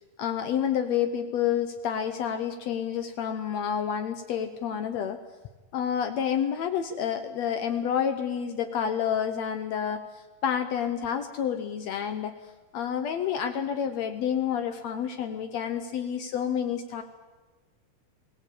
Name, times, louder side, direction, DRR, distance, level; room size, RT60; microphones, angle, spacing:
voice 1, 0.2-5.2 5.7-12.3 12.7-17.0, left 8 dB, 75° left, 8 dB, 1.6 m, -29 dB
21.5 x 17.5 x 8.6 m, 1.3 s
omnidirectional pair, 4.3 m